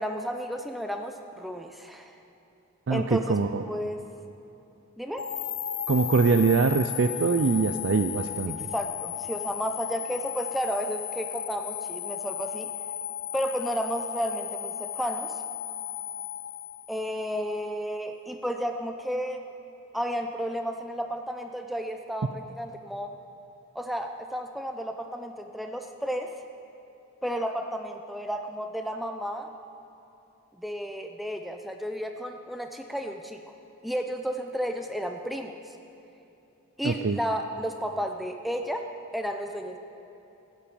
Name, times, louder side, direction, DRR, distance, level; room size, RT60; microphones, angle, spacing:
voice 1, 0.0-2.1 2.9-4.0 5.0-5.3 8.5-12.7 13.3-15.4 16.9-19.4 19.9-23.1 23.7-26.3 27.2-29.5 30.6-33.4 33.8-35.7 36.8-38.9 39.1-39.8, equal, ahead, 4 dB, 0.7 m, -32 dB
voice 2, 2.9-3.6 5.9-8.7 36.8-37.2, right 4 dB, 55° right, 9 dB, 0.4 m, -23 dB
sound 1, 5.2-17.4, left 11 dB, 50° left, 0.4 m, -35 dB
14.5 x 9.9 x 8.6 m, 2.9 s
head